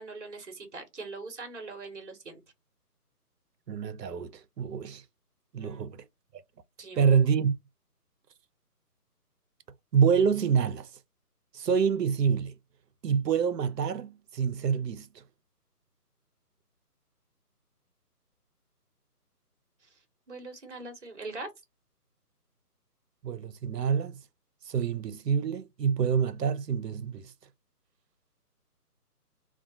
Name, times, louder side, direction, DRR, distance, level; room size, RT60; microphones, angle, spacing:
voice 1, 0.0-2.4 5.6-5.9 6.8-7.0 20.3-21.5, right 3 dB, 50° right, 0.9 m, -42 dB
voice 2, 3.7-5.0 5.5-6.0 7.0-7.6 9.9-10.9 11.5-12.5 13.0-15.2 23.2-24.2 24.7-27.3, right 7 dB, 85° right, 0.6 m, -27 dB
2.2 x 2.2 x 2.7 m
figure-of-eight pair, 160°, 48 cm